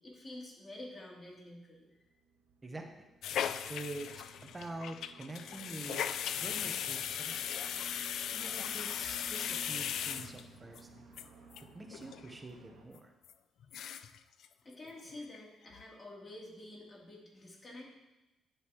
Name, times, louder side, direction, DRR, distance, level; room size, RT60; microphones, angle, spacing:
voice 1, 0.0-2.1 14.6-17.8, left 1 dB, 30° left, -4 dB, 3.2 m, -49 dB
sound 1, 1.9-12.9, right 4 dB, 75° right, 1.3 m, -57 dB
sound 2, 3.2-10.8 11.2-11.3 11.5-11.6 11.9-12.3 12.6-12.7 13.2-13.3 13.6-14.2 14.4-14.5 14.9-15.4 15.7-15.8, left 9 dB, 75° left, 0.4 m, -38 dB
voice 2, 3.7-6.1 6.4-7.7 8.3-11.0 11.7-13.1, right 2 dB, 20° right, 4 dB, 1.1 m, -46 dB
10.5 x 8.0 x 3.1 m, 1.0 s
cardioid pair, 90°, 0 cm